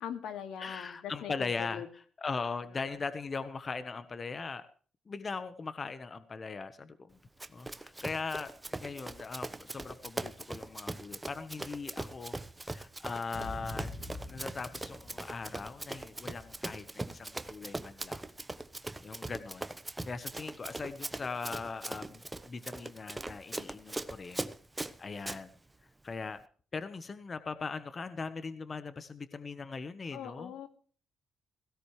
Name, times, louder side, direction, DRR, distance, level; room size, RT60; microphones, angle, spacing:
voice 1, 0.0-1.9 30.1-30.7, left 9 dB, 80° left, 7 dB, 2.3 m, -41 dB
voice 2, 0.6-1.8 2.2-4.7 5.1-7.2 7.5-12.4 12.7-18.2 19.0-19.7 20.1-24.4 24.8-25.5 26.0-26.4 26.7-30.5, left 4 dB, 35° left, 12 dB, 1.2 m, -40 dB
Run, 7.4-25.4, right 2 dB, 15° right, 1.0 m, -41 dB
sound 1, 13.3-17.6, left 2 dB, 65° left, 5.1 m, -46 dB
16.5 x 16.5 x 3.3 m, 0.43 s
cardioid pair, 90°, 0 cm